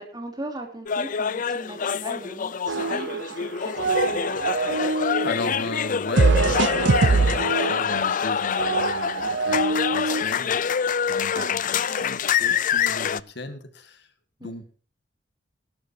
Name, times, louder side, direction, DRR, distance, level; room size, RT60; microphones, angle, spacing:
voice 1, 0.0-4.5 11.3-11.6 11.9-12.1 14.4-14.5, right 1 dB, 25° right, 3 dB, 3.2 m, -38 dB
sound 1, 0.9-13.2, left 7 dB, 45° left, 0.5 m, -26 dB
sound 2, 2.7-3.4 3.7-5.3 6.2-10.2, right 3 dB, 70° right, 0.8 m, -23 dB
voice 2, 4.7-14.1 14.4-14.7, left 2 dB, 65° left, 8 dB, 1.9 m, -36 dB
20.0 x 11.5 x 2.8 m, 0.40 s
head